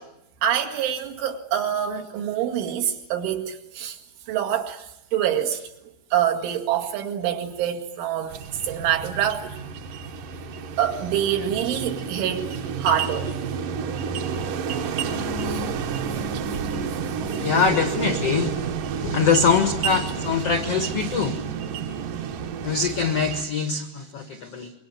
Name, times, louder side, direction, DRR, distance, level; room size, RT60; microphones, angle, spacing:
voice 1, 0.4-4.0 4.3-5.7 6.1-9.6 10.8-12.5 12.8-13.3 15.4-15.6, right 9 dB, 85° right, 4.5 m, -26 dB
sound 1, 8.3-23.4, right 6 dB, 65° right, 2.3 m, -30 dB
voice 2, 17.2-18.6 19.0-21.4 22.6-24.7, left 5 dB, 85° left, 1.3 m, -23 dB
25.0 x 23.5 x 9.3 m
omnidirectional pair, 5.3 m